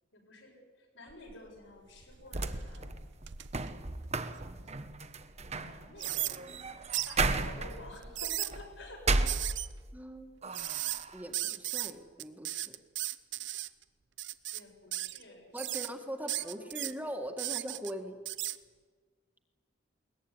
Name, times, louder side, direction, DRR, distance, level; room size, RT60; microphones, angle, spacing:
voice 1, 0.1-0.5 0.9-3.0 5.6-6.4 7.1-9.0 14.5-16.9, left 2 dB, 85° left, 0 dB, 7.8 m, -51 dB
sound 1, 1.1-1.6 2.0-4.7 5.2-5.3 6.0-6.4 6.9-7.1 8.0-8.5 9.3-9.7 10.5-11.0 11.3-11.9 12.2-13.7 14.2-14.6 14.9-15.2 15.6-15.9 16.3-16.9 17.4-17.9 18.3-18.6, right 15 dB, 65° right, 0.9 m, -36 dB
sound 2, 2.0-10.0 10.4-11.2, right 3 dB, 35° right, 1.2 m, -35 dB
voice 2, 9.9-10.4 11.1-12.8 15.5-18.2, equal, 10° right, 4 dB, 1.8 m, -41 dB
22.0 x 19.5 x 9.8 m, 1.5 s
head